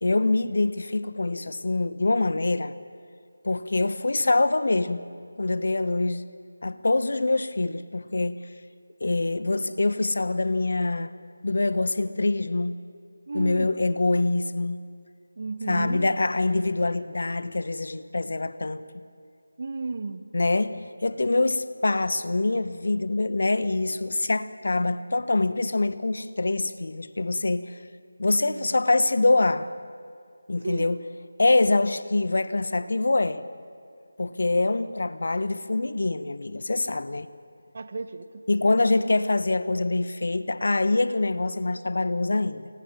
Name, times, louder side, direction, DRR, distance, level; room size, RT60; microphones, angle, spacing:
voice 1, 0.0-2.7 3.4-5.0 5.4-6.2 6.6-8.4 9.0-11.1 11.4-12.8 13.3-14.8 15.7-18.8 20.3-27.8 28.2-29.7 30.5-31.0 31.4-33.4 34.2-37.3 38.5-42.7, left 2 dB, 60° left, 14 dB, 1.3 m, -25 dB
voice 2, 13.3-13.7 15.4-16.2 19.6-20.2 28.4-28.7 30.6-30.9 37.7-39.0, right 3 dB, 45° right, 12 dB, 1.5 m, -34 dB
30.0 x 25.0 x 7.4 m, 2.3 s
figure-of-eight pair, 165°, 0 cm